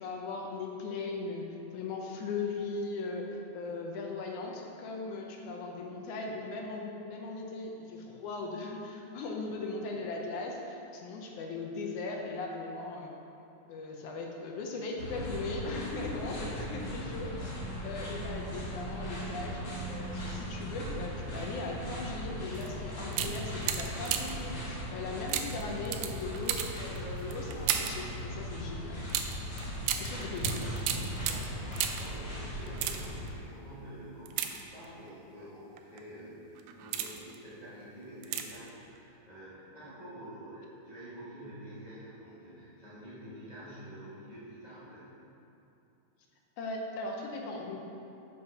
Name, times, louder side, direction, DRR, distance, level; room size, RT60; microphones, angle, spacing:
voice 1, 0.0-13.1 13.7-19.6 19.9-29.0 30.0-30.6 46.6-48.0, left 3 dB, 75° left, 0 dB, 2.2 m, -38 dB
sound 1, 15.0-33.2, equal, 40° left, 2.2 m, -38 dB
sound 2, 22.5-22.7 23.1-24.5 25.3-28.1 29.1-32.2 32.6-33.3 34.3-35.1 35.8-36.0 36.6-37.4 38.2-38.7 39.0-39.1, right 9 dB, 80° right, 1.9 m, -35 dB
voice 2, 29.9-30.3 31.0-45.2, right 1 dB, 60° left, -11 dB, 0.4 m, -48 dB
7.3 x 5.4 x 5.8 m, 2.8 s
omnidirectional pair, 3.7 m